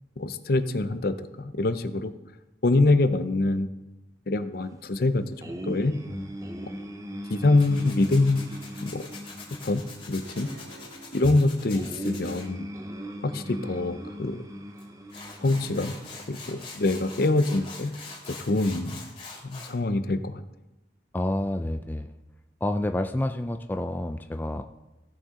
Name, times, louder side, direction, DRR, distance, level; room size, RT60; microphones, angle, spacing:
voice 1, 0.2-2.1 2.6-3.7 4.3-5.2 5.7-5.9 7.3-8.5 8.8-9.0 9.6-9.8 10.1-10.5 11.1-12.7 13.2-14.5 15.4-15.9 16.3-17.9 18.4-19.0 19.4-20.4, left 2 dB, 55° left, 11 dB, 0.6 m, -24 dB
sound 1, 5.4-16.6, equal, 20° right, 0.7 m, -40 dB
voice 2, 6.1-6.6 21.1-22.2 22.6-24.6, left 1 dB, 10° left, 6 dB, 0.3 m, -29 dB
Tools, 7.6-12.5 14.8-14.9 15.1-19.7, left 3 dB, 30° left, 2.4 m, -44 dB
Diesel locomotive horn, 10.2-12.2, right 1 dB, 70° right, 1.7 m, -48 dB
16.0 x 6.3 x 3.7 m, 0.98 s
head